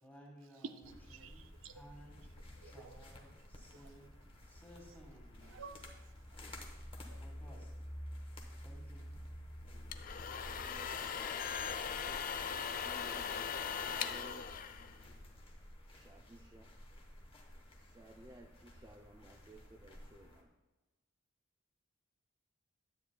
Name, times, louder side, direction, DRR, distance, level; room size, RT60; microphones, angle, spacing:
voice 1, 0.0-1.5 1.7-2.3 2.6-4.1 4.4-5.8 7.2-7.7 8.6-9.0 12.1-12.4 14.6-14.8 15.8-16.0 16.3-16.5, equal, 10° left, -1 dB, 1.5 m, -59 dB
voice 2, 0.5-1.8 2.6-3.2 3.7-3.9 5.4-6.4 6.6-7.2, right 5 dB, 80° right, 8 dB, 0.5 m, -53 dB
sound 1, 0.8-20.4, equal, 30° left, 1.0 m, -52 dB
sound 2, 9.7-15.4, left 7 dB, 45° left, 0.4 m, -40 dB
voice 3, 10.6-11.5 12.8-14.4 15.9-16.7 17.8-20.5, right 2 dB, 20° right, 2 dB, 0.4 m, -57 dB
10.0 x 8.4 x 2.2 m, 1.2 s
head